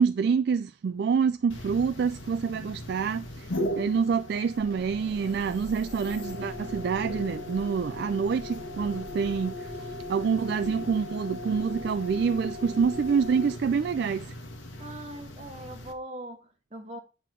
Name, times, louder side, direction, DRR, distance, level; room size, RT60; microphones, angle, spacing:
voice 1, 0.0-3.5 3.8-9.5 10.1-14.3, right 6 dB, 55° right, 0.3 m, -26 dB
sound 1, 1.5-15.9, left 1 dB, 90° left, 1.3 m, -38 dB
sound 2, 4.6-13.5, equal, 10° right, 1.1 m, -49 dB
voice 2, 14.8-17.0, right 1 dB, 35° right, 1.4 m, -41 dB
8.3 x 3.8 x 5.9 m
head